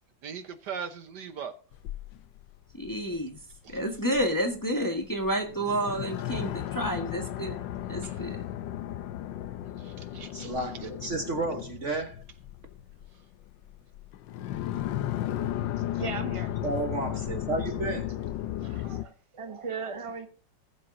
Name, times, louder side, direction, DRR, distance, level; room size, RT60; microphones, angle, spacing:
voice 1, 0.2-1.5 3.6-3.8 8.0-8.2 9.8-10.5, right 7 dB, 65° right, 1.6 m, -39 dB
sound 1, 1.7-19.0, left 12 dB, 80° left, 1.4 m, -35 dB
voice 2, 2.7-3.4 3.7-7.6 7.9-8.4, right 1 dB, 10° left, 1.4 m, -30 dB
voice 3, 10.3-12.2 16.6-18.1, right 2 dB, 45° right, 1.4 m, -32 dB
voice 4, 15.8-16.5 17.1-17.2 18.6-20.3, right 5 dB, 20° right, 1.3 m, -38 dB
19.5 x 7.4 x 2.6 m
omnidirectional pair, 2.0 m